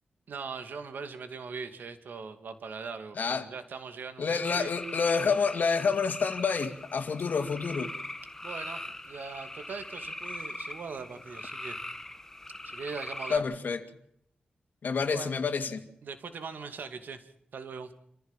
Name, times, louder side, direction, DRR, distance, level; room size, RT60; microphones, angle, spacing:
voice 1, 0.3-4.7 8.4-11.8 12.6-13.4 15.1-15.3 16.0-17.9, right 5 dB, 80° right, 2.7 m, -41 dB
voice 2, 3.2-3.5 4.2-7.9 13.3-13.8 14.8-15.9, left 5 dB, 70° left, 2.5 m, -28 dB
sound 1, 4.4-13.4, left 1 dB, 15° left, 1.6 m, -41 dB
27.5 x 15.0 x 7.5 m
wide cardioid pair, 100°, 3 cm